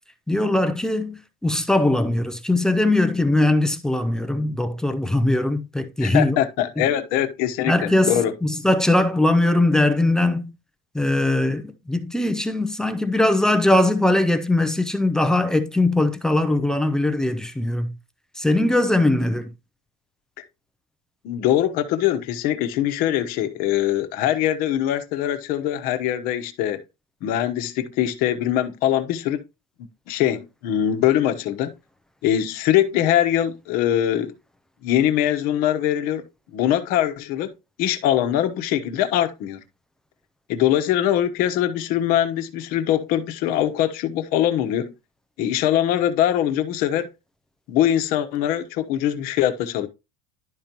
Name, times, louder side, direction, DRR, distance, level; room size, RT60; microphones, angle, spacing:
voice 1, 0.3-6.4 7.7-10.5 10.9-17.9 18.4-19.5, left 1 dB, 5° left, 0.4 m, -20 dB
voice 2, 6.0-8.3 21.2-26.8 27.2-29.4 30.1-31.7 32.2-34.3 34.8-36.3 36.5-37.5 37.8-39.6 40.5-44.9 45.4-47.1 47.7-49.9, left 11 dB, 45° left, 1.0 m, -22 dB
11.5 x 5.2 x 2.9 m
cardioid pair, 170°, 20 cm